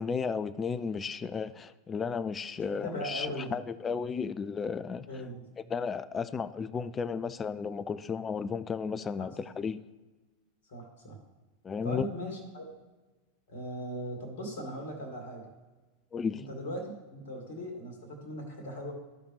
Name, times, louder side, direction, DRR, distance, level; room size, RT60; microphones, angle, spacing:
voice 1, 0.0-5.1 5.7-9.8 11.6-12.0 16.1-16.4, left 5 dB, 20° left, 16 dB, 0.4 m, -34 dB
voice 2, 2.8-3.5 5.1-5.5 9.2-9.4 10.7-11.2 11.8-12.6 13.5-15.4 16.5-18.9, equal, 55° left, 2 dB, 2.1 m, -39 dB
14.5 x 5.1 x 3.2 m, 1.2 s
figure-of-eight pair, 90°, 0 cm